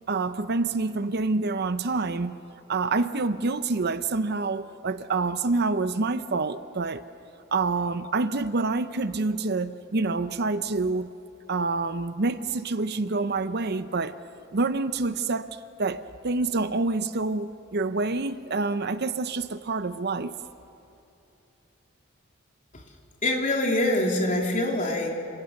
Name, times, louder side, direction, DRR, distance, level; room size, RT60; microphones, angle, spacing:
voice 1, 0.1-2.4 2.7-7.0 7.5-11.1 11.5-14.2 14.5-20.3, right 3 dB, 50° right, 0.7 m, -27 dB
voice 2, 23.2-25.1, left 1 dB, 40° left, 3.5 m, -24 dB
29.0 x 27.0 x 6.6 m
head